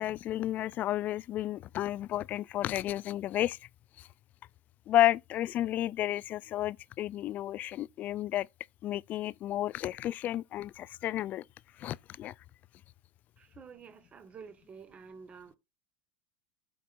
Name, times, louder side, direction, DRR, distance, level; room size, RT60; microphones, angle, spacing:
voice 1, 0.0-3.6 4.0-4.1 4.9-8.5 8.8-11.4 11.8-12.3, left 13 dB, 40° left, 0.4 m, -31 dB
voice 2, 13.4-15.6, right 6 dB, 30° right, 1.4 m, -50 dB
8.5 x 5.2 x 2.5 m
hypercardioid pair, 85°, 4 cm